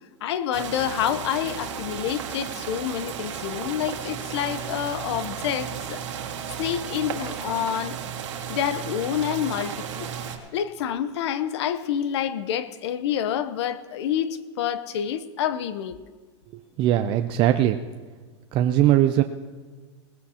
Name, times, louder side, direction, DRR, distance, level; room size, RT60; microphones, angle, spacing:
voice 1, 0.2-6.0 6.6-8.0 8.5-10.1 10.5-16.0, left 9 dB, 65° left, 13 dB, 0.9 m, -28 dB
sound 1, 0.5-10.4, right 8 dB, 75° right, 2.0 m, -34 dB
voice 2, 16.8-17.8 18.5-19.2, right 12 dB, 35° right, 7 dB, 0.5 m, -20 dB
19.0 x 15.5 x 2.9 m, 1.4 s
supercardioid pair, 135°, 15 cm